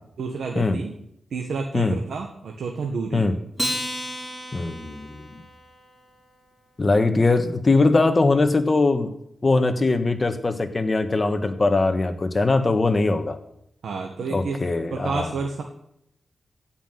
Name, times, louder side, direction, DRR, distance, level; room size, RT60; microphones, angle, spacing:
voice 1, 0.2-1.0 1.3-3.3 13.8-14.6 14.9-15.6, right 4 dB, 85° right, 2 dB, 1.5 m, -30 dB
Acoustic guitar, 3.5-6.2, equal, 5° right, 5.0 m, -32 dB
voice 2, 4.5-5.4 6.8-9.1 9.4-13.4 14.3-15.3, left 3 dB, 35° left, 8 dB, 1.5 m, -21 dB
15.5 x 5.9 x 9.2 m, 0.78 s
cardioid pair, 85°, 0 cm